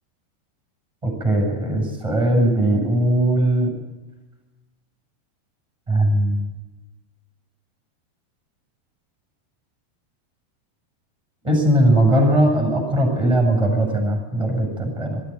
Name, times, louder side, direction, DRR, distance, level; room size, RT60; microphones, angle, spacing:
voice 1, 1.0-3.7 5.9-6.4 11.4-15.2, right 1 dB, 5° right, 1 dB, 7.4 m, -19 dB
22.0 x 13.0 x 9.2 m, 1.2 s
omnidirectional pair, 5.1 m